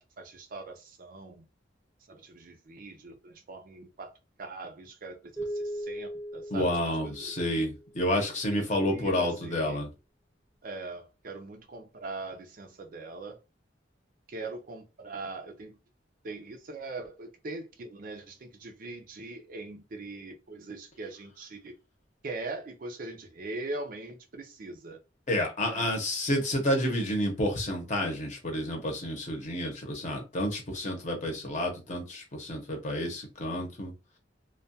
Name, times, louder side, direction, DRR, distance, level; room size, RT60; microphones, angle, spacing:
voice 1, 0.0-1.5 2.1-4.1 4.4-7.7 8.5-9.8 10.6-13.4 14.3-15.8 16.2-21.7 22.2-25.0 25.7-25.9, right 3 dB, 50° right, 0.5 m, -41 dB
sound 1, 5.4-7.9, right 1 dB, 5° right, 0.7 m, -38 dB
voice 2, 6.5-9.9 25.3-33.9, left 1 dB, 40° left, 0.8 m, -30 dB
2.3 x 2.2 x 2.7 m
head